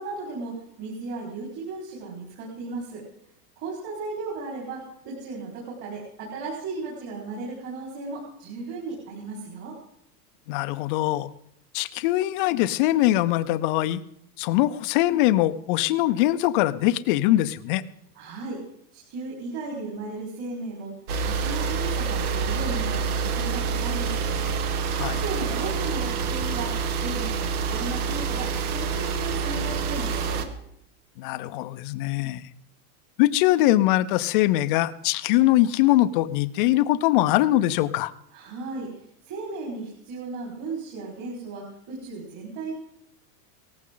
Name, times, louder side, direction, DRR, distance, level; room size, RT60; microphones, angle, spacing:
voice 1, 0.0-3.0 3.6-9.8 18.1-18.6 18.9-20.9 21.2-24.3 25.0-30.5 38.3-42.7, right 3 dB, 35° right, -4 dB, 4.7 m, -35 dB
voice 2, 10.5-11.3 11.7-14.0 14.4-17.8 25.0-25.2 31.2-32.5 33.2-38.1, left 15 dB, 35° left, 14 dB, 0.5 m, -22 dB
sound 1, 21.1-30.5, right 5 dB, 65° right, 1.7 m, -27 dB
18.0 x 15.0 x 3.8 m, 0.76 s
supercardioid pair, 160°, 47 cm